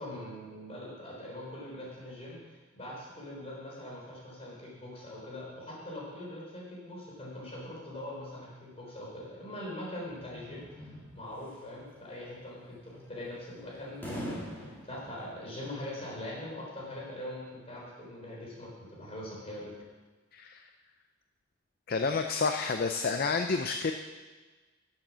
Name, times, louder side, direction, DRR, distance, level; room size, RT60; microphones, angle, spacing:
voice 1, 0.0-19.7, left 1 dB, 30° left, -4 dB, 3.9 m, -42 dB
sound 1, 10.1-15.3, equal, 10° left, 2.3 m, -43 dB
voice 2, 20.3-20.6 21.9-23.9, left 4 dB, 50° left, 6 dB, 0.5 m, -29 dB
11.5 x 7.4 x 6.2 m, 1.3 s
head